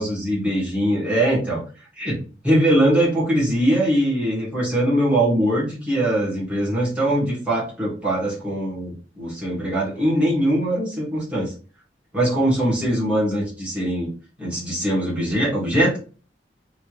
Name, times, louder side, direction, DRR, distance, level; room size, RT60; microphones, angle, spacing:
voice 1, 0.0-1.6 2.0-11.5 12.1-14.1 14.4-16.0, right 1 dB, 5° right, -7 dB, 1.6 m, -21 dB
3.4 x 2.7 x 3.0 m, 0.37 s
head